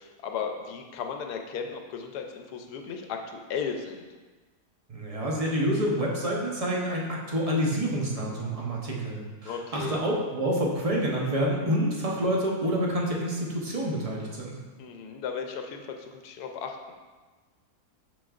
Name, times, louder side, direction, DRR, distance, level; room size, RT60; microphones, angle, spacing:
voice 1, 0.0-4.1 9.4-10.0 14.8-16.9, left 6 dB, 80° left, 4 dB, 1.2 m, -35 dB
voice 2, 4.9-14.6, equal, 30° right, -2 dB, 0.7 m, -28 dB
6.4 x 6.1 x 2.4 m, 1.3 s
omnidirectional pair, 1.7 m